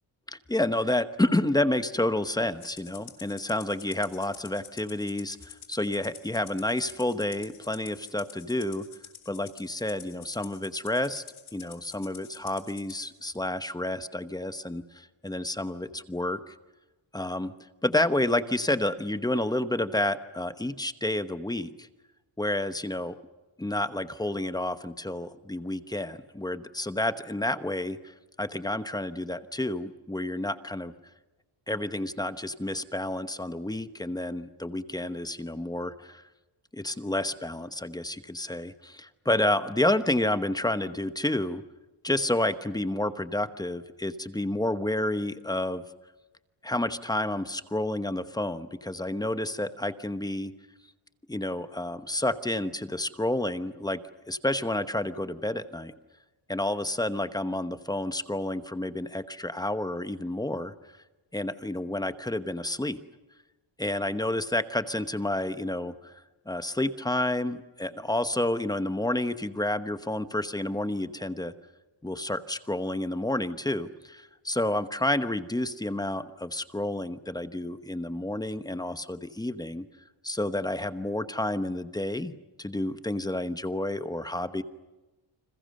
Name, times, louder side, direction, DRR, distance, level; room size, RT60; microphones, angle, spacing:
voice 1, 0.3-8.8 9.3-11.2 11.5-16.5 17.1-17.5 17.8-21.9 22.4-23.2 23.6-28.0 28.4-30.9 31.7-36.2 36.7-41.6 42.0-45.8 46.6-50.5 51.3-54.0 54.3-55.9 56.5-60.7 61.3-63.0 63.8-66.1 66.5-71.5 72.0-79.8 80.2-82.3 82.6-84.6, left 1 dB, 10° left, 11 dB, 1.0 m, -30 dB
Rattle (instrument), 2.6-13.1, left 9 dB, 70° left, 3.7 m, -48 dB
30.0 x 27.0 x 6.6 m, 1.1 s
wide cardioid pair, 175°, 49 cm